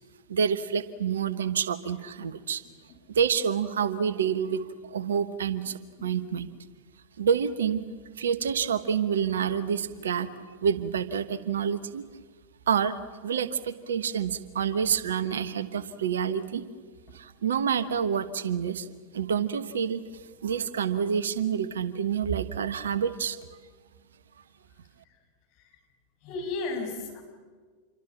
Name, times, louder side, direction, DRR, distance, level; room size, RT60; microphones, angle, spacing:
voice 1, 0.3-2.6 3.1-6.5 7.2-7.8 8.2-10.3 10.6-12.1 12.7-16.6 17.1-18.9 19.1-20.1 20.4-23.4, right 7 dB, 65° right, 15 dB, 1.2 m, -28 dB
voice 2, 26.2-27.2, left 3 dB, 45° left, 2 dB, 6.4 m, -34 dB
27.5 x 24.0 x 7.3 m, 1.5 s
figure-of-eight pair, 90°, 0 cm